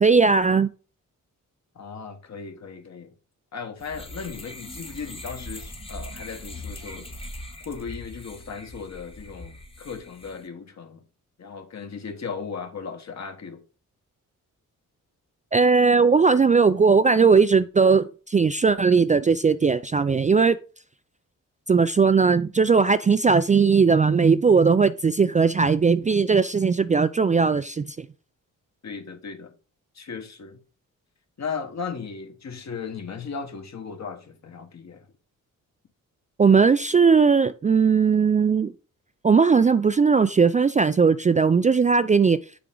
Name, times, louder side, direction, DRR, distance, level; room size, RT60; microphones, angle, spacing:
voice 1, 0.0-0.7 15.5-20.6 21.7-28.1 36.4-38.7 39.2-42.4, right 5 dB, 25° right, 0.3 m, -18 dB
voice 2, 1.7-3.1 3.5-7.1 7.6-11.0 11.4-13.6 28.8-29.5 29.9-30.6 31.4-35.1, left 5 dB, 55° left, 1.4 m, -36 dB
sound 1, 3.8-10.5, left 1 dB, 15° left, 1.1 m, -40 dB
6.8 x 5.0 x 3.8 m
cardioid pair, 70°, 33 cm